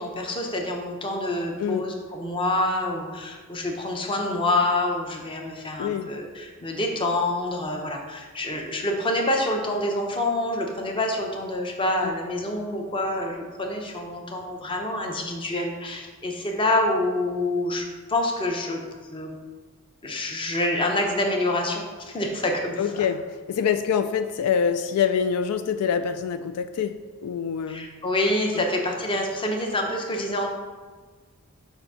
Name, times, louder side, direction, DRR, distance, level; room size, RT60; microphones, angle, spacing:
voice 1, 0.0-18.8 19.1-19.3 20.0-22.8 27.7-30.5, left 1 dB, 25° left, 1 dB, 0.7 m, -27 dB
voice 2, 5.8-6.1 12.0-12.1 22.8-23.2 23.5-26.9 27.2-27.9 28.6-28.7, left 7 dB, 85° left, 9 dB, 0.3 m, -25 dB
6.8 x 2.7 x 5.5 m, 1.4 s
head